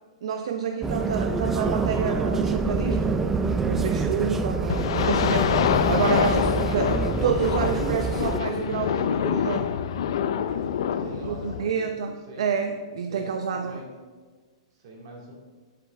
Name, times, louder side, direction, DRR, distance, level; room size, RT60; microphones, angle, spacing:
voice 1, 0.2-3.2 3.6-9.7 11.2-13.8, right 6 dB, 65° right, 5 dB, 0.7 m, -28 dB
sound 1, 0.8-8.4, right 4 dB, 5° right, 0.3 m, -26 dB
sound 2, 4.7-11.6, left 8 dB, 55° left, 0.5 m, -26 dB
voice 2, 10.9-12.0 12.3-12.5 13.1-14.0 14.7-15.3, right 1 dB, 45° right, -1 dB, 2.4 m, -43 dB
10.5 x 7.9 x 3.5 m, 1.4 s
hypercardioid pair, 170°, 3 cm